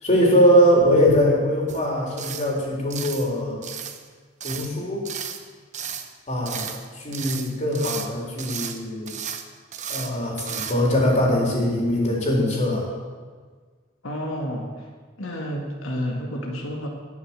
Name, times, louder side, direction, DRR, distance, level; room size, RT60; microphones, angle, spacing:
voice 1, 0.0-3.6 4.4-5.1 6.3-6.7 7.0-9.1 9.9-12.9, equal, 35° left, -2 dB, 3.8 m, -21 dB
sound 1, 1.7-1.9 2.2-2.5 2.9-3.3 3.6-4.0 4.4-4.7 5.1-5.4 5.7-6.1 6.5-6.9 7.1-8.1 8.4-8.8 9.1-9.4 9.7-10.1 10.4-10.7, right 8 dB, 35° right, 1.0 m, -33 dB
voice 2, 14.0-14.9 15.2-16.9, equal, 90° left, 0 dB, 2.0 m, -30 dB
19.0 x 6.9 x 7.6 m, 1.5 s
head